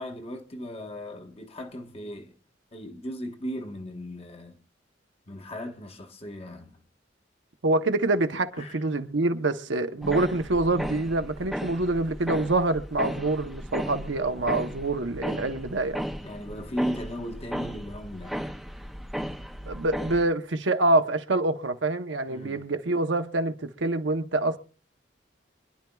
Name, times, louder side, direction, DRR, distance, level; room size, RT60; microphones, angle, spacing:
voice 1, 0.0-2.3 2.7-4.6 5.3-6.8 8.6-8.8 16.2-18.4 22.3-22.6, equal, 30° left, 1.0 m, -36 dB
voice 2, 7.6-16.0 19.7-24.6, right 2 dB, 80° right, 0.9 m, -26 dB
sound 1, 10.0-20.2, equal, ahead, 0.5 m, -35 dB
25.5 x 10.5 x 2.3 m
head